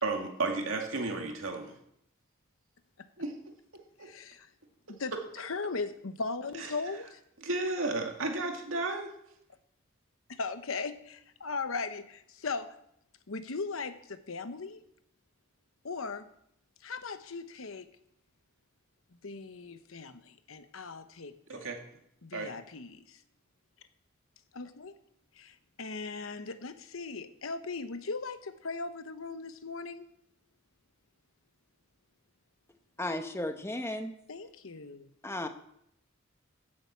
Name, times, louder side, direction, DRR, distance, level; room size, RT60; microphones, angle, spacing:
voice 1, 0.0-1.7 3.2-3.3 4.0-4.1 6.6-6.7 7.4-9.1 21.5-21.8 22.3-22.5, right 3 dB, 75° right, 2.4 m, -33 dB
voice 2, 4.0-4.5 4.9-5.1 5.4-7.2 10.3-12.7 13.3-14.8 15.8-16.3 16.8-17.9 19.2-21.6 22.2-23.2 24.5-25.0 25.4-30.1 34.3-35.1, left 4 dB, 80° left, 1.0 m, -38 dB
voice 3, 33.0-34.1 35.2-35.5, left 1 dB, 10° left, 0.9 m, -34 dB
15.5 x 7.7 x 6.1 m
head